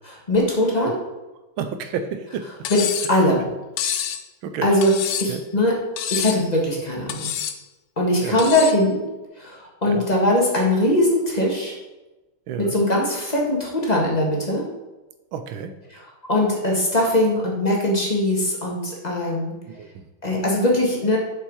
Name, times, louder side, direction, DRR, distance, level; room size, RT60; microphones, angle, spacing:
voice 1, 0.3-1.0 2.7-3.4 4.6-4.9 5.2-5.7 6.1-7.3 8.0-9.0 9.4-11.7 12.6-14.7 15.9-16.0 16.3-19.5 20.2-21.2, left 1 dB, 20° left, -2 dB, 1.4 m, -21 dB
voice 2, 1.6-2.4 4.4-4.7 5.3-5.4 8.2-8.4 9.8-10.1 12.5-12.8 15.3-15.7 19.8-20.0, right 7 dB, 80° right, 8 dB, 1.5 m, -30 dB
Cutlery silverware, 2.6-3.2 3.8-4.2 4.8-5.4 6.0-6.5 7.1-7.6 8.4-8.8, left 9 dB, 85° left, 0.8 m, -27 dB
7.1 x 5.4 x 4.7 m, 1.1 s
omnidirectional pair, 2.2 m